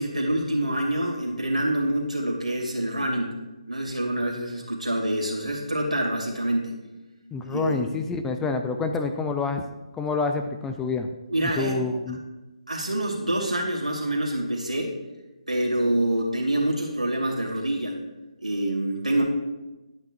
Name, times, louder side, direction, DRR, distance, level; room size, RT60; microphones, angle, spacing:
voice 1, 0.0-3.3 3.7-6.7 7.5-7.9 11.3-11.8 12.7-14.9 15.5-18.0 18.4-19.2, right 1 dB, 85° right, 0 dB, 2.6 m, -26 dB
voice 2, 7.3-9.6 9.9-11.1 11.6-12.2, left 4 dB, 10° left, 5 dB, 0.4 m, -27 dB
11.5 x 8.9 x 2.6 m, 1.1 s
figure-of-eight pair, 145°, 4 cm